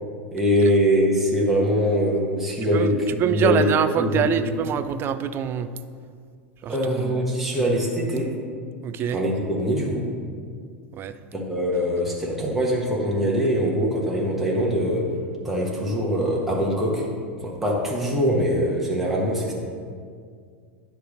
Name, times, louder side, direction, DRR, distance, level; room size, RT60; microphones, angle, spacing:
voice 1, 0.3-3.7 3.9-4.5 6.7-8.3 9.1-10.1 11.3-15.1 15.4-17.1 17.4-19.5, equal, 5° right, -4 dB, 1.5 m, -23 dB
voice 2, 2.7-5.7 6.6-7.6 8.8-9.2 10.9-11.1, right 8 dB, 35° right, 12 dB, 0.4 m, -25 dB
10.0 x 3.4 x 6.4 m, 2.1 s
hypercardioid pair, 90°, 7 cm